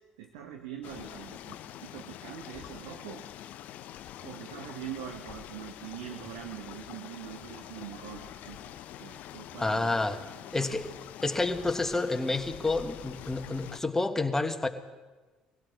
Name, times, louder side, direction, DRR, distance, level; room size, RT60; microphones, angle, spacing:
voice 1, 0.2-3.2 4.2-10.0 10.5-10.8, right 9 dB, 85° right, 4 dB, 1.0 m, -43 dB
sound 1, 0.8-13.8, left 11 dB, 65° left, 0.6 m, -45 dB
voice 2, 9.6-10.2 10.5-10.9 11.2-14.7, left 2 dB, 15° left, 6 dB, 1.4 m, -29 dB
22.0 x 16.5 x 3.5 m, 1.3 s
hypercardioid pair, 60°, 3 cm